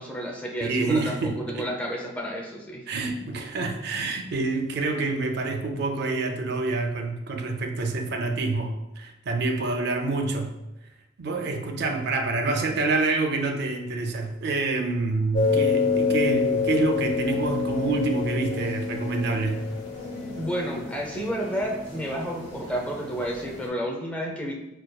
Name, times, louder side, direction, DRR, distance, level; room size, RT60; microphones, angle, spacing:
voice 1, 0.0-2.8 20.4-24.5, equal, 5° left, 0 dB, 0.5 m, -31 dB
voice 2, 0.6-1.7 2.9-10.5 11.2-19.6, right 3 dB, 60° right, 5 dB, 0.4 m, -27 dB
sound 1, 15.3-23.7, left 5 dB, 75° left, 0.8 m, -28 dB
5.1 x 2.2 x 2.2 m, 0.93 s
head